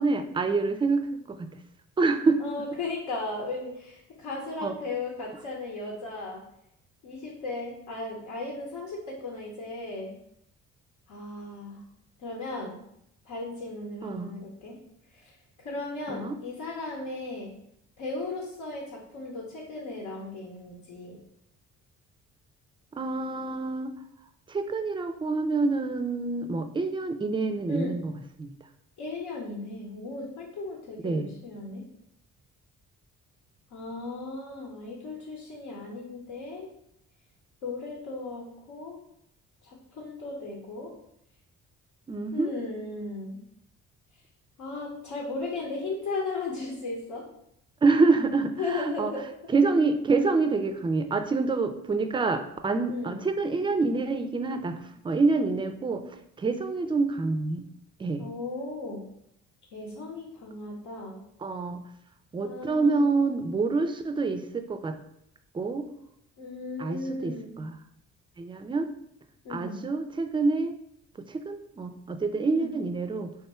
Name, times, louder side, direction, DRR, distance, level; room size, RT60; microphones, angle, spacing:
voice 1, 0.0-1.5 2.0-2.4 4.6-4.7 14.0-14.3 16.1-16.4 23.0-24.0 24.5-28.1 28.4-28.5 31.0-31.3 42.1-42.5 47.8-49.1 49.5-54.8 55.0-56.0 56.4-57.7 58.0-58.2 61.4-61.8 62.3-65.0 65.5-65.9 66.8-67.8 68.4-68.9 69.5-70.7 71.3-73.3, right 3 dB, 15° right, 8 dB, 0.3 m, -27 dB
voice 2, 2.4-6.4 7.0-10.2 11.1-11.8 12.2-12.8 13.3-14.8 15.1-15.3 15.6-17.5 18.0-21.2 27.7-27.9 29.0-31.8 33.7-36.7 37.6-39.0 39.6-40.9 42.3-43.4 44.6-47.3 48.6-49.5 52.9-53.2 58.2-59.0 59.7-61.2 62.4-63.0 66.4-67.6 69.4-69.8 72.5-72.7, left 3 dB, 85° left, -3 dB, 0.9 m, -36 dB
3.5 x 2.2 x 4.2 m, 0.76 s
cardioid pair, 90°, 30 cm